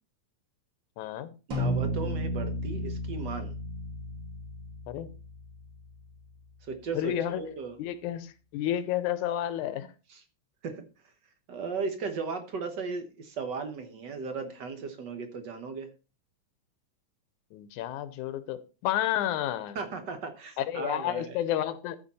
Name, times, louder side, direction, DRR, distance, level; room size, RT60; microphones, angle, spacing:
voice 1, 1.0-1.3 4.9-5.1 6.9-7.4 7.8-9.9 17.5-19.8 20.6-22.0, left 11 dB, 85° left, 2.2 m, -31 dB
sound 1, 1.5-6.1, equal, 40° right, 3.0 m, -33 dB
voice 2, 1.5-3.5 6.7-7.8 10.1-10.2 10.6-10.8 11.5-15.9 19.7-21.3, right 4 dB, 55° right, 1.2 m, -36 dB
13.5 x 5.1 x 4.2 m
omnidirectional pair, 3.4 m